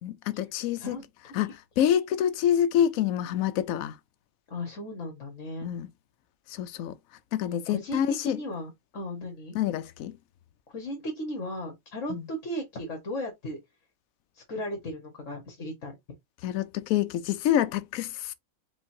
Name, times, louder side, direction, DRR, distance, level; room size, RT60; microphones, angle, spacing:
voice 1, 0.0-1.0 1.3-4.0 5.6-5.9 6.5-7.0 7.3-8.4 9.5-10.2 12.1-12.3 16.4-18.3, left 10 dB, 75° left, 1.0 m, -27 dB
voice 2, 4.5-5.7 7.7-9.6 10.7-13.6 14.5-15.9, left 1 dB, 60° left, 1.7 m, -36 dB
5.0 x 3.3 x 2.7 m
omnidirectional pair, 1.5 m